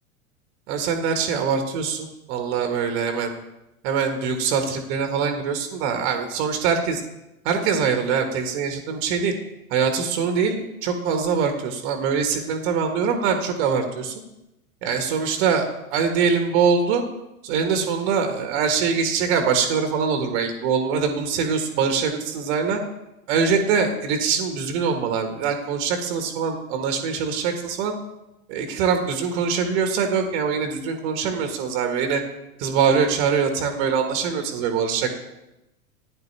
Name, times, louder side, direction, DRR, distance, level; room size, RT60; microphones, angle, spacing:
voice 1, 0.7-3.3 3.8-7.0 7.4-9.3 9.7-14.1 14.8-17.0 17.4-22.8 23.3-27.9 28.5-32.2 32.6-35.1, right 6 dB, 45° right, 5 dB, 1.6 m, -23 dB
14.5 x 10.0 x 3.3 m, 0.92 s
figure-of-eight pair, 95°, 44 cm